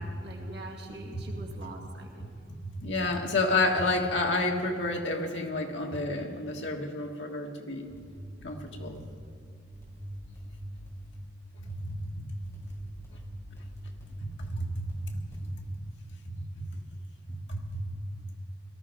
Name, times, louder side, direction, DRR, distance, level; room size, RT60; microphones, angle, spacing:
voice 1, 0.0-2.3, right 2 dB, 60° right, 0 dB, 2.4 m, -43 dB
voice 2, 1.1-1.4 2.6-7.9 8.4-9.0 11.7-12.3 14.2-15.2 15.5-15.9 16.3-16.7 17.3-17.9 18.2-18.3, left 2 dB, 80° left, 1 dB, 1.7 m, -31 dB
sound 1, 7.9-9.2 9.7-11.1 11.6-12.0 12.4-14.6 14.8-15.5, equal, 15° left, 4.6 m, -45 dB
18.5 x 13.0 x 4.7 m, 2.5 s
head